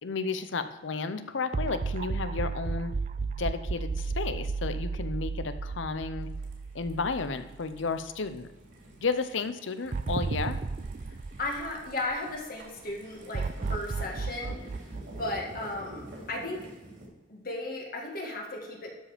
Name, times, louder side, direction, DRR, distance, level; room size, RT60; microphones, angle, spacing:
voice 1, 0.0-2.9 3.4-6.3 6.7-8.5 9.0-10.6, left 4 dB, 70° left, 10 dB, 0.7 m, -32 dB
sound 1, 1.5-7.9 8.2-8.3 9.9-12.4 13.3-16.1, right 4 dB, 35° right, 0.3 m, -33 dB
sound 2, 6.2-17.1, right 1 dB, 75° right, 3.2 m, -49 dB
voice 2, 11.1-14.6 15.2-16.6 17.3-18.9, left 2 dB, 45° left, -1 dB, 1.9 m, -35 dB
12.5 x 5.1 x 5.0 m, 1.1 s
head